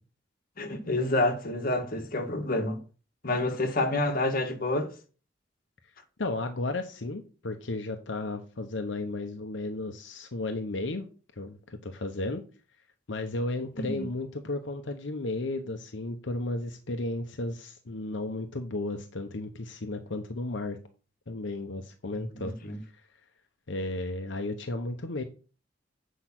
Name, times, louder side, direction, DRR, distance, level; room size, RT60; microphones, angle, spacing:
voice 1, 0.6-2.8 3.2-4.9 13.8-14.0 22.1-22.8, left 2 dB, 50° left, 1.5 m, -28 dB
voice 2, 6.2-11.1 11.4-12.4 13.1-20.8 21.3-22.5 22.9-23.0 23.7-25.2, left 2 dB, 80° left, 0.9 m, -34 dB
8.2 x 5.1 x 6.0 m
head